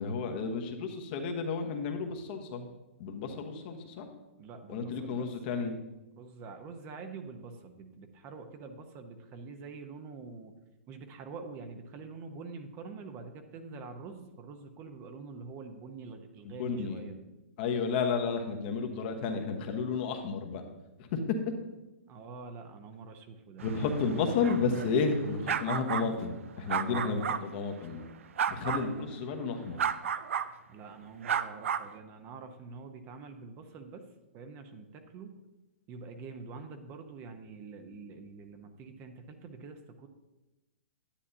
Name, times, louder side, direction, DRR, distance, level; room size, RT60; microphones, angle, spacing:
voice 1, 0.0-2.7 3.0-4.1 4.7-5.8 16.4-17.0 17.6-20.6 21.0-21.2 23.6-28.1 28.5-29.8, left 5 dB, 45° left, 4 dB, 1.1 m, -32 dB
voice 2, 4.4-5.3 6.2-10.5 10.9-17.3 22.1-23.7 26.8-27.2 30.7-34.1 34.3-35.4 35.9-40.1, right 4 dB, 30° right, 6 dB, 0.9 m, -46 dB
sound 1, 23.6-27.4 28.4-28.9 29.8-30.5 31.2-31.9, right 8 dB, 70° right, 0.5 m, -33 dB
10.0 x 8.5 x 2.8 m, 1.0 s
hypercardioid pair, 125°, 7 cm